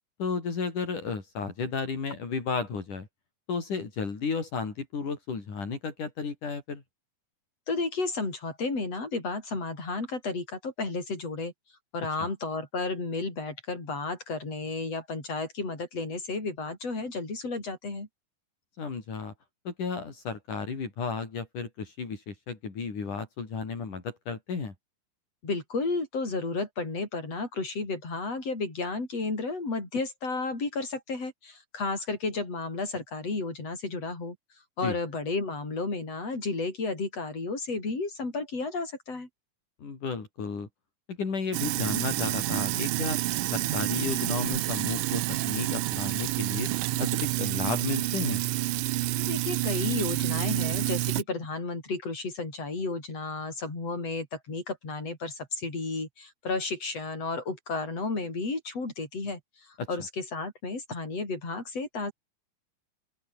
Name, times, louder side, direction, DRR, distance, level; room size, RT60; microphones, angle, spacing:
voice 1, 0.2-3.1 3.5-6.8 12.2-12.3 18.8-19.3 19.7-24.7 34.8-35.0 39.8-40.7 41.1-43.2 43.5-46.7 47.0-48.4 59.8-59.9, left 5 dB, 70° left, 6.4 m, -33 dB
voice 2, 7.7-11.5 11.9-18.1 25.4-34.4 34.8-39.3 49.2-59.4 59.9-62.1, left 3 dB, 50° left, 8.7 m, -32 dB
Sink (filling or washing), 41.5-51.2, right 17 dB, 75° right, 2.3 m, -29 dB
open air
omnidirectional pair, 3.7 m